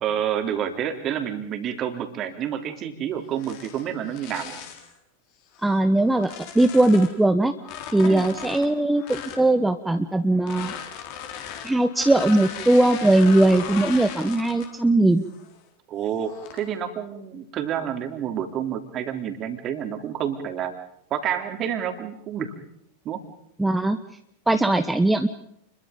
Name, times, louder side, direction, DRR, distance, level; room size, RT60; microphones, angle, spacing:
voice 1, 0.0-4.6 8.0-8.2 15.9-20.7 21.1-22.5 23.1-23.2, right 9 dB, 30° right, 6 dB, 3.5 m, -29 dB
sound 1, 3.3-4.9 5.5-7.2 7.6-9.5 10.4-14.8 15.2-15.6 16.2-16.7, left 9 dB, 45° left, 4.4 m, -38 dB
voice 2, 5.6-7.5 7.9-10.7 11.6-15.2 23.6-24.0 24.5-25.3, right 2 dB, 5° right, 8 dB, 1.2 m, -20 dB
30.0 x 22.5 x 5.3 m, 0.73 s
figure-of-eight pair, 90°, 0 cm